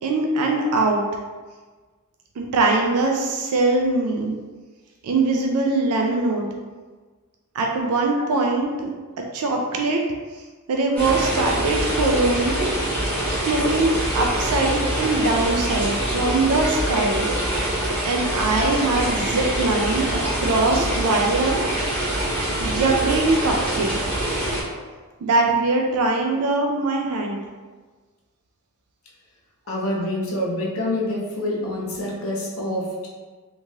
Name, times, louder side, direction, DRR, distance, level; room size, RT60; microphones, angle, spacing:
voice 1, 0.0-1.0 2.4-4.3 5.0-6.5 7.5-8.9 9.3-10.0 10.7-12.6 13.4-17.3 18.0-21.7 22.6-23.9 25.2-27.4, right 2 dB, 80° right, 1 dB, 0.4 m, -22 dB
sound 1, 11.0-24.6, right 1 dB, 5° left, 0.9 m, -24 dB
voice 2, 29.7-33.1, left 1 dB, 65° left, -3 dB, 0.7 m, -26 dB
2.9 x 2.8 x 2.3 m, 1.4 s
head